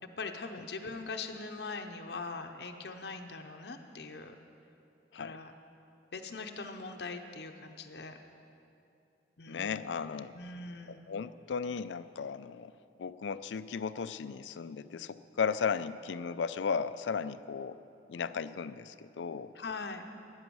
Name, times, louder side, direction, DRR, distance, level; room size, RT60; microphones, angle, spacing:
voice 1, 0.2-4.4 5.2-5.5 6.1-8.2 9.4-9.8 10.3-11.1 19.5-20.0, left 4 dB, 65° left, 5 dB, 0.7 m, -41 dB
voice 2, 9.5-10.3 10.9-12.7 13.0-17.8 18.1-19.5, left 6 dB, 85° left, 14 dB, 0.4 m, -35 dB
14.5 x 9.8 x 6.2 m, 2.7 s
head